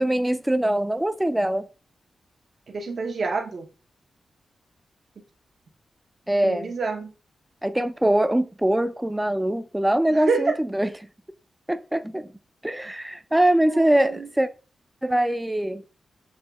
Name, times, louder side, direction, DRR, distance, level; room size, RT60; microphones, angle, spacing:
voice 1, 0.0-1.7 6.3-6.7 7.6-10.9 11.7-12.3 12.6-14.5 15.0-15.8, right 1 dB, 10° right, 0.3 m, -23 dB
voice 2, 2.7-3.7 6.4-7.1 10.1-10.5 12.8-12.9 13.7-14.3, right 4 dB, 60° right, 0.7 m, -28 dB
6.3 x 3.0 x 2.2 m
cardioid pair, 90°, 0 cm